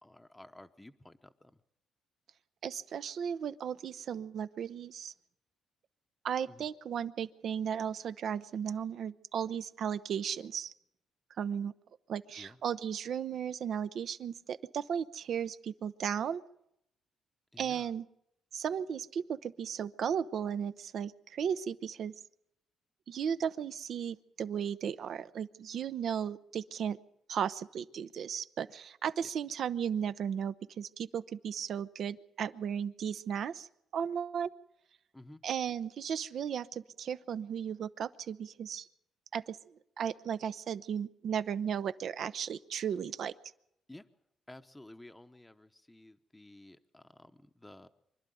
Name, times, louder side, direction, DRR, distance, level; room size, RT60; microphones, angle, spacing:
voice 1, 0.0-1.6 6.5-6.7 12.4-12.6 17.5-17.9 29.2-29.3 35.1-35.4 43.9-44.1 44.5-47.9, left 1 dB, 10° left, 7 dB, 0.9 m, -53 dB
voice 2, 2.6-5.1 6.2-10.7 11.4-11.7 12.1-16.4 17.6-18.0 18.5-22.1 23.1-27.0 27.3-33.7 33.9-34.5 35.4-38.9 39.3-39.6 40.0-43.3, right 8 dB, 65° right, 13 dB, 0.7 m, -35 dB
25.0 x 11.5 x 9.2 m, 0.78 s
cardioid pair, 90°, 0 cm